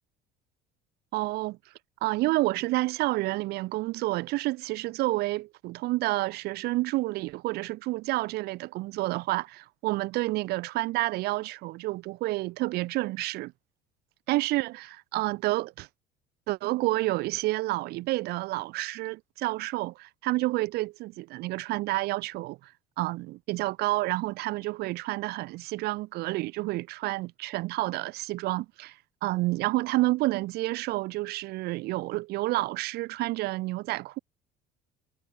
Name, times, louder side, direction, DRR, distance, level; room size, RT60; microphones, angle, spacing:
voice 1, 1.1-1.6 2.0-13.5 14.3-15.9 16.5-34.2, right 19 dB, 65° right, 1.1 m, -29 dB
cardioid pair, 120°, 18 cm